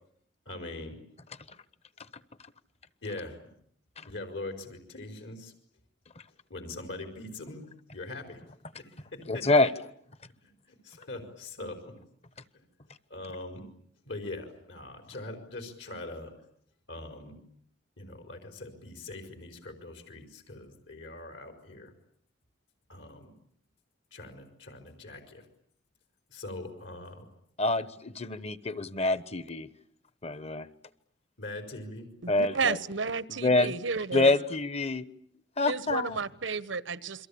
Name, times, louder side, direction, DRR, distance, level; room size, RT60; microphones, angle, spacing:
voice 1, 0.4-1.0 3.0-3.4 4.0-5.5 6.5-7.7 7.9-8.4 8.8-9.7 10.4-11.9 13.1-13.6 14.0-16.3 16.9-17.4 18.0-21.9 22.9-23.3 24.1-25.4 26.3-27.3 31.4-32.2, left 2 dB, 75° left, 6 dB, 4.9 m, -42 dB
voice 2, 9.3-9.7 27.6-29.7 30.2-30.7 32.3-32.8 33.3-33.7 34.1-35.0 35.6-36.2, left 2 dB, 35° left, 15 dB, 1.1 m, -26 dB
voice 3, 32.2-34.3 35.7-37.3, right 4 dB, 90° right, 16 dB, 1.2 m, -32 dB
29.0 x 23.5 x 8.6 m, 0.66 s
head